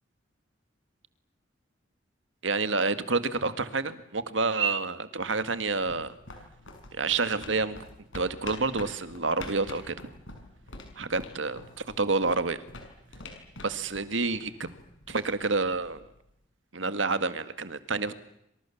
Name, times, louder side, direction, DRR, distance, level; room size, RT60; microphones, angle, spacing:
voice 1, 2.4-6.2 6.9-7.8 8.1-10.1 11.0-12.6 13.6-14.7 15.1-16.1 16.7-18.1, right 3 dB, 70° right, 12 dB, 2.0 m, -28 dB
sound 1, 5.6-16.2, left 2 dB, 75° left, 6.5 m, -46 dB
27.0 x 27.0 x 7.3 m, 0.79 s
head